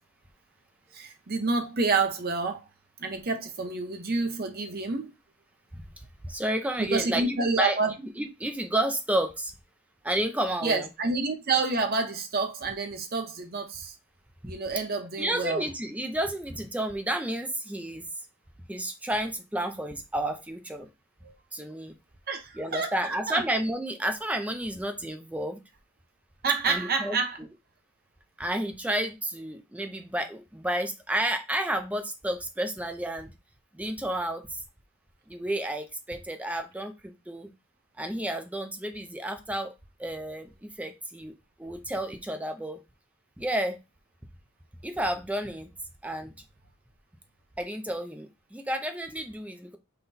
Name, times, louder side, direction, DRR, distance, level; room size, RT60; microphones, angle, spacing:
voice 1, 0.9-2.6 3.0-5.1 6.8-7.9 10.6-13.9 14.5-15.6 21.2-21.3 22.3-23.4 26.4-27.4, right 4 dB, 45° right, 0.8 m, -28 dB
voice 2, 5.7-9.5 10.0-10.9 14.4-14.5 15.2-18.1 18.7-20.9 21.5-21.9 22.5-25.6 26.7-27.5 28.4-33.3 33.7-34.6 35.3-37.5 38.0-39.7 40.0-41.3 41.6-42.8 43.4-43.8 44.8-45.7 46.0-46.3 47.6-49.8, right 1 dB, 5° right, 0.5 m, -31 dB
5.7 x 2.2 x 4.0 m
head